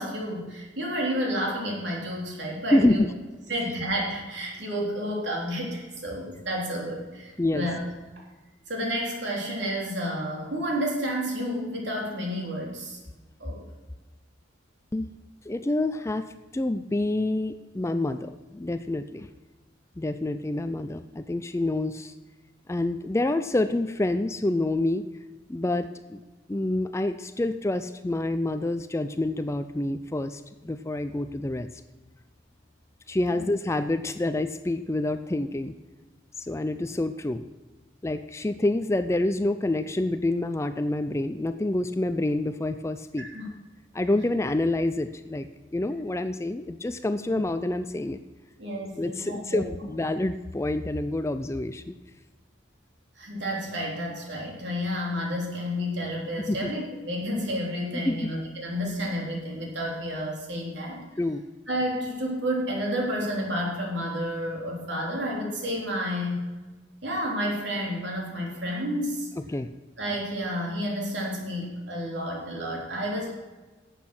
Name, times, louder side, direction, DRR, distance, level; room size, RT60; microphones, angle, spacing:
voice 1, 0.0-3.0 3.5-7.8 8.2-8.3 8.7-13.0 13.4-13.6 33.3-33.4 43.2-43.5 48.6-49.6 53.2-61.0 61.7-66.4 67.0-69.3 70.0-73.3, equal, 60° right, -1 dB, 3.3 m, -30 dB
voice 2, 2.7-3.1 7.4-7.7 14.9-15.1 15.4-19.3 20.0-22.1 22.7-25.0 25.5-26.2 26.5-31.7 33.1-35.7 36.4-37.5 38.0-43.2 43.9-48.2 49.0-52.0 56.5-56.7 58.1-58.3 61.2-61.4 69.5-69.7, left 2 dB, 15° left, 11 dB, 0.4 m, -27 dB
11.5 x 8.4 x 6.0 m, 1.2 s
head